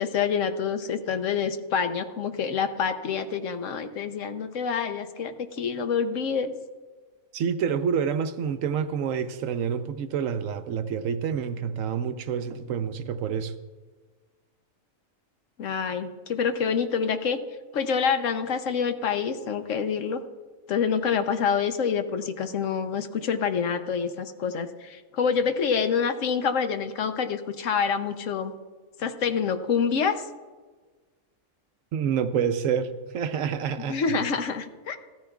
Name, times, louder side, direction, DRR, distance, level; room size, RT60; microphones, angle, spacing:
voice 1, 0.0-6.5 15.6-17.4 17.7-20.2 20.7-28.5 29.0-30.3 33.9-35.0, left 6 dB, 70° left, 8 dB, 1.1 m, -27 dB
voice 2, 7.3-13.5 31.9-34.2, right 7 dB, 75° right, 10 dB, 1.0 m, -28 dB
14.5 x 13.5 x 2.3 m, 1.3 s
omnidirectional pair, 1.4 m